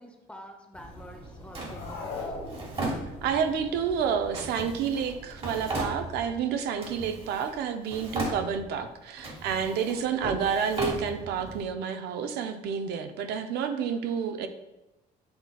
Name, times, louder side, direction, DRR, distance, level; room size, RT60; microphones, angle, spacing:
voice 1, 0.0-2.5, equal, 5° left, 2 dB, 0.6 m, -47 dB
sound 1, 0.7-6.3, right 1 dB, 30° left, 1.0 m, -47 dB
sound 2, 1.5-3.2, left 4 dB, 70° left, 1.1 m, -38 dB
Drawer open or close, 1.5-3.6 4.3-6.4 6.8-7.6 7.8-8.8 9.2-11.6, right 2 dB, 35° right, 1.1 m, -36 dB
voice 2, 3.2-14.5, right 7 dB, 75° right, 8 dB, 0.4 m, -29 dB
7.6 x 2.8 x 2.2 m, 0.96 s
cardioid pair, 110°, 17 cm